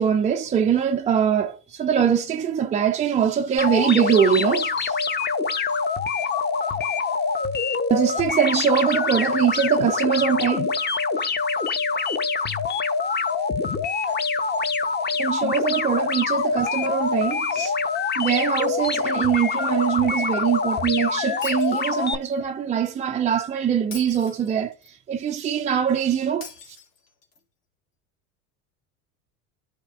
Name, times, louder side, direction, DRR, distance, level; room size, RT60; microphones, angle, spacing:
voice 1, 0.0-5.0 7.9-10.7 15.2-17.8 18.2-26.5, right 8 dB, 20° right, 0.3 m, -22 dB
sound 1, 3.6-22.1, left 4 dB, 20° left, 0.9 m, -25 dB
Shatter, 21.4-22.4 23.9-24.9 26.4-27.4, left 5 dB, 85° left, 2.6 m, -43 dB
13.0 x 5.0 x 2.5 m
hypercardioid pair, 75°, 46 cm